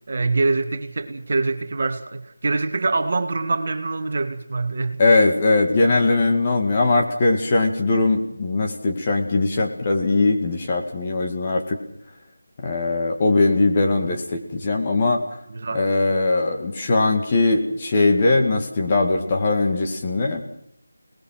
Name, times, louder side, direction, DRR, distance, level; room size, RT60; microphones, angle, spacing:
voice 1, 0.1-5.0 15.5-15.9, right 3 dB, 40° right, 7 dB, 1.7 m, -24 dB
voice 2, 5.0-11.8 12.6-15.2 15.7-20.4, left 3 dB, 25° left, 2 dB, 2.2 m, -20 dB
28.5 x 19.5 x 6.0 m, 0.69 s
figure-of-eight pair, 175°, 0 cm